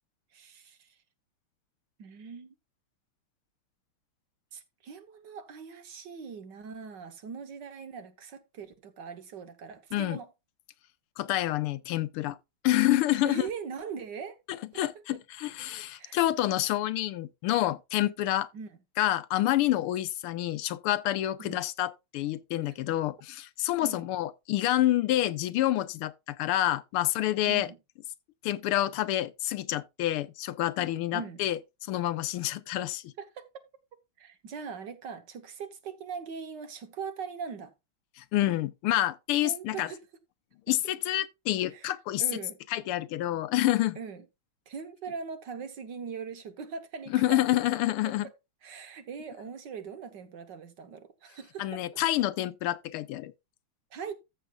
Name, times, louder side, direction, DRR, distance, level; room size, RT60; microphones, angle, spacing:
voice 1, 0.3-0.9 2.0-2.5 4.5-10.3 13.2-14.4 14.7-15.0 15.9-16.2 18.5-18.7 21.4-21.7 23.8-24.1 27.4-27.8 31.1-31.4 33.2-33.5 34.2-37.7 39.4-40.0 41.7-41.9 42.2-42.6 43.9-44.2 44.7-47.4 48.0-48.2 48.6-52.0 53.9-54.1, right 6 dB, 60° right, 1.7 m, -41 dB
voice 2, 11.2-12.4 12.6-13.5 14.8-18.5 19.0-27.7 28.4-33.0 38.2-39.9 40.7-42.2 42.7-44.0 47.1-48.3 51.6-53.3, left 14 dB, 90° left, 1.6 m, -28 dB
14.0 x 6.7 x 2.4 m
omnidirectional pair, 2.4 m